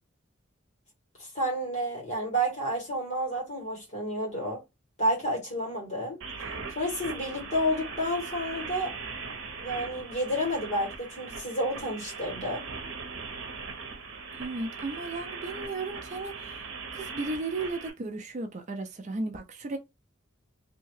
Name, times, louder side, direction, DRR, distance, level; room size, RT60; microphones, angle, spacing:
voice 1, 1.3-4.6 5.0-6.2 6.7-8.9 9.6-12.6, equal, 35° left, 1.5 m, -30 dB
sound 1, 6.2-17.9, right 4 dB, 85° right, 0.8 m, -40 dB
voice 2, 14.4-16.6 16.9-19.8, right 3 dB, 35° right, 0.4 m, -35 dB
2.7 x 2.2 x 3.1 m
head